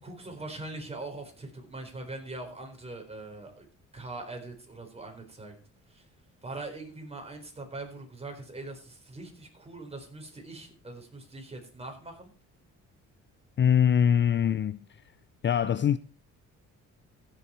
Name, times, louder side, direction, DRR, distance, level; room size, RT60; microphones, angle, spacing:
voice 1, 0.0-3.7 3.9-5.6 5.9-6.0 6.4-12.3, right 2 dB, 20° right, 4.4 m, -42 dB
voice 2, 13.6-14.8 15.4-16.0, left 8 dB, 40° left, 0.5 m, -23 dB
15.5 x 7.0 x 4.5 m
cardioid pair, 90°, 30 cm